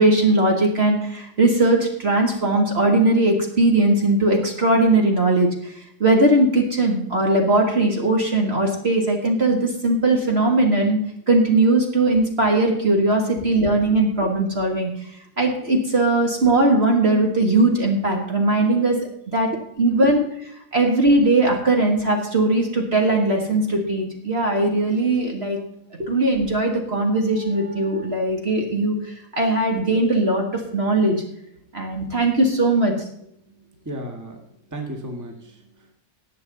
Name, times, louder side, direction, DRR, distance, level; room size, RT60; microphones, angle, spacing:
voice 1, 0.0-5.7 6.0-11.0 11.3-14.9 15.4-19.0 19.3-19.5 19.8-20.2 20.7-25.6 26.0-29.0 29.3-31.2 31.7-32.9, right 2 dB, 40° right, 1 dB, 1.9 m, -19 dB
voice 2, 13.3-13.8 19.5-19.6 20.0-20.1 33.4-34.4 34.7-35.9, right 1 dB, 10° right, 2 dB, 1.7 m, -35 dB
18.5 x 7.0 x 4.0 m, 0.71 s
omnidirectional pair, 1.8 m